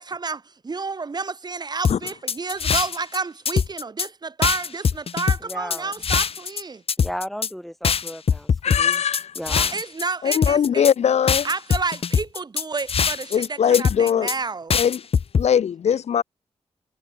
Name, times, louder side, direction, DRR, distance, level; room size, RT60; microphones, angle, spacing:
voice 1, 0.0-6.8 9.5-10.9 11.4-14.8, right 4 dB, 40° right, 1.6 m, -30 dB
sound 1, 1.8-3.2 3.5-4.1 4.4-6.6 6.9-7.5 7.8-10.0 10.3-10.9 11.3-13.5 13.7-14.4 14.7-15.5, left 6 dB, 60° left, 1.6 m, -22 dB
voice 2, 5.4-5.9 7.0-9.0 9.4-9.8, equal, ahead, 3.9 m, -35 dB
voice 3, 8.6-9.3 10.2-11.5 13.3-14.3 14.7-15.0 15.4-16.2, left 8 dB, 80° left, 0.9 m, -20 dB
wide cardioid pair, 90°, 11 cm